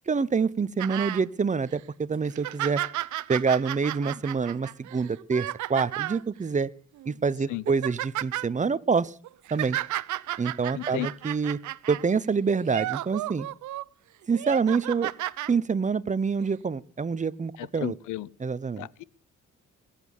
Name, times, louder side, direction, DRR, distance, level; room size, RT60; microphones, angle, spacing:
voice 1, 0.1-2.8 3.3-6.7 7.1-9.1 9.5-9.8 10.4-11.6 11.9-13.5 14.3-15.1 15.5-17.9 18.4-18.9, right 5 dB, 25° right, 0.8 m, -26 dB
sound 1, 0.8-1.2 1.7-1.8 2.2-6.2 7.0-7.1 7.5-8.5 9.2-12.0 12.6-13.8 14.3-15.5 16.4-16.5, right 15 dB, 75° right, 0.7 m, -33 dB
voice 2, 10.7-11.1 17.6-18.3 18.8-19.0, left 18 dB, 85° left, 0.7 m, -33 dB
20.5 x 8.5 x 7.1 m
cardioid pair, 90°, 30 cm